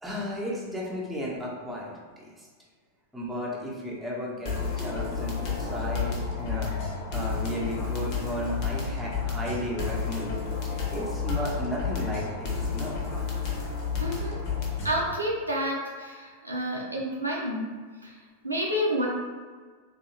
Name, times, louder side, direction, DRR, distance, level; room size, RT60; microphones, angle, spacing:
voice 1, 0.0-2.5 3.1-6.7 7.1-13.0, equal, 5° right, -5 dB, 0.8 m, -34 dB
sound 1, 4.5-15.1, left 5 dB, 45° left, 0.8 m, -31 dB
voice 2, 14.0-14.4 14.8-17.7 18.0-18.2 18.4-19.1, equal, 85° right, -3 dB, 0.7 m, -29 dB
3.5 x 2.7 x 2.9 m, 1.5 s
figure-of-eight pair, 90°, 0 cm